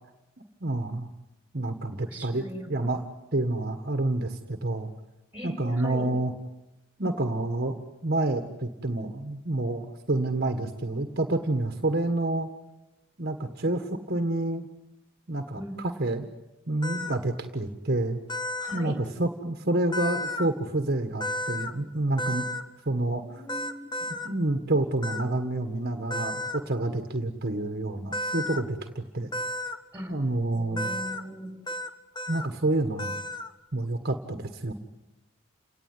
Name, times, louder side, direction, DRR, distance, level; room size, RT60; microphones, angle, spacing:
voice 1, 0.6-1.1 1.5-3.1 3.3-4.9 5.4-6.3 7.0-12.5 13.2-14.7 15.3-16.3 16.7-18.2 18.7-22.5 22.8-23.4 24.2-29.3 30.1-30.9 32.3-33.1 33.7-34.7, right 2 dB, 50° right, 6 dB, 1.7 m, -28 dB
voice 2, 2.0-2.9 5.3-6.1 15.5-15.8 18.6-19.0 23.2-23.9 29.9-30.2 30.5-31.5, equal, 10° right, 5 dB, 5.2 m, -40 dB
sound 1, 16.8-17.2 18.3-18.8 19.9-20.5 21.2-21.7 22.2-22.6 23.5-24.3 25.0-25.2 26.1-26.6 28.1-28.6 29.3-29.8 30.8-31.2 31.7-31.9 32.1-32.5 33.0-33.5, left 1 dB, 20° left, 1.5 m, -32 dB
29.5 x 18.5 x 9.8 m, 0.97 s
head